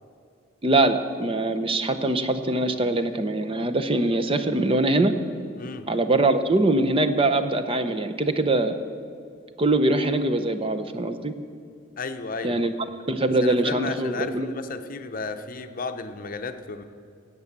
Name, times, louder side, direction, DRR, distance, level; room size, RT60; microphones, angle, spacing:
voice 1, 0.6-5.1 5.9-8.7 9.6-11.3 12.4-12.7 13.1-14.5, right 2 dB, 25° right, 9 dB, 0.7 m, -23 dB
voice 2, 12.0-12.6 13.4-16.8, left 4 dB, 45° left, 8 dB, 0.7 m, -33 dB
17.5 x 8.1 x 7.3 m, 2.4 s
head